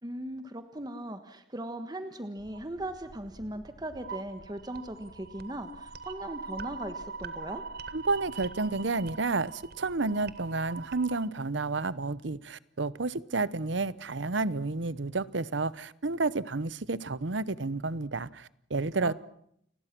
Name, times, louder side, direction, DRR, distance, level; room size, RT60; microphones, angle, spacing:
voice 1, 0.0-7.6 19.0-19.1, right 1 dB, 20° right, 1.4 m, -39 dB
sound 1, 2.4-11.3, right 4 dB, 60° right, 1.4 m, -43 dB
voice 2, 7.9-19.1, right 3 dB, 85° right, 0.9 m, -31 dB
29.5 x 20.5 x 6.1 m
head